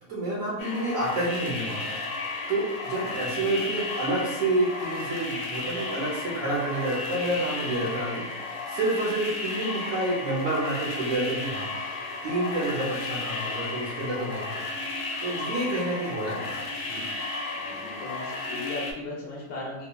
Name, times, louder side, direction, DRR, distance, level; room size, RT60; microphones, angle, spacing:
voice 1, 0.1-2.2 2.5-11.6 12.2-14.6 15.2-17.0, right 2 dB, 75° right, -7 dB, 1.0 m, -29 dB
sound 1, 0.6-18.9, left 3 dB, 90° left, 1.0 m, -34 dB
voice 2, 17.5-19.9, left 2 dB, 65° left, -5 dB, 0.8 m, -37 dB
2.9 x 2.1 x 2.2 m, 1.0 s
omnidirectional pair, 1.4 m